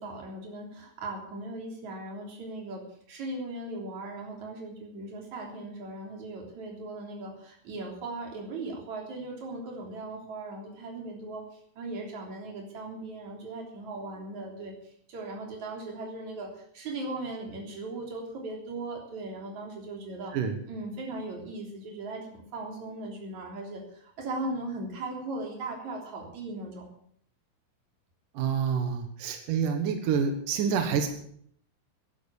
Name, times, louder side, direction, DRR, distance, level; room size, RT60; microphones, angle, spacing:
voice 1, 0.0-2.8 3.1-11.4 11.8-20.3 20.7-26.9, right 2 dB, 40° right, 0 dB, 4.1 m, -38 dB
voice 2, 28.3-31.1, right 6 dB, 80° right, 6 dB, 1.9 m, -27 dB
13.5 x 11.0 x 7.1 m, 0.64 s
omnidirectional pair, 5.8 m